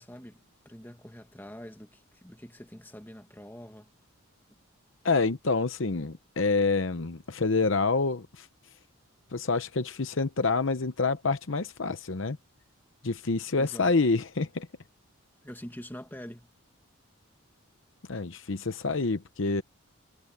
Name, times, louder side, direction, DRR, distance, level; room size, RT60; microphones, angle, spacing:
voice 1, 0.0-3.9 13.6-13.9 15.4-16.5, equal, 10° left, 2.0 m, -45 dB
voice 2, 5.0-8.5 9.3-12.4 13.0-14.7 18.1-19.6, left 3 dB, 60° left, 0.8 m, -27 dB
head